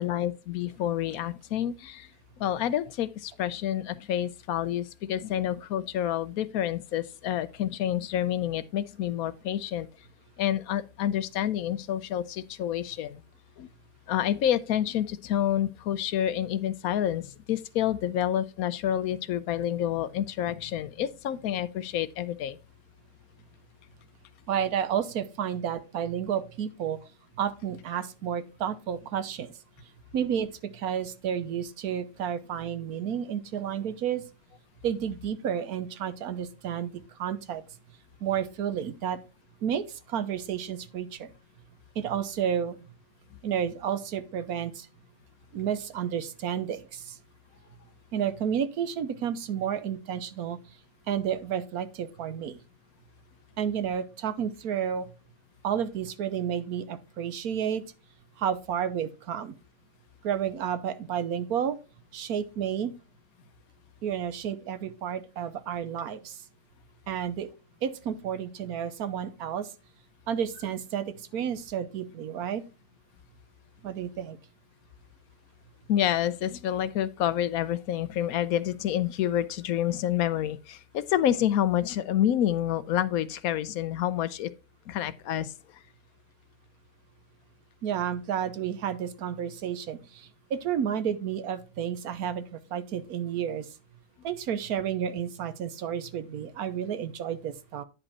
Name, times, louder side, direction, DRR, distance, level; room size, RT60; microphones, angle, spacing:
voice 1, 0.0-2.1 2.4-9.9 10.4-13.2 13.6-13.7 14.1-22.6 75.9-84.5 84.9-85.5, left 11 dB, 80° left, 1.1 m, -28 dB
voice 2, 24.5-27.0 27.4-29.5 30.1-34.2 34.8-36.9 37.2-37.6 38.2-39.2 39.6-41.3 41.9-42.8 43.4-44.9 45.5-47.2 48.1-50.6 51.1-52.6 53.6-55.1 55.6-57.8 58.4-59.6 60.2-61.8 62.1-62.9 64.0-66.4 67.1-67.5 67.8-69.7 70.3-72.6 73.8-74.4 87.8-93.7 94.2-97.8, right 8 dB, 85° right, 1.4 m, -31 dB
9.7 x 5.4 x 4.2 m
omnidirectional pair, 1.5 m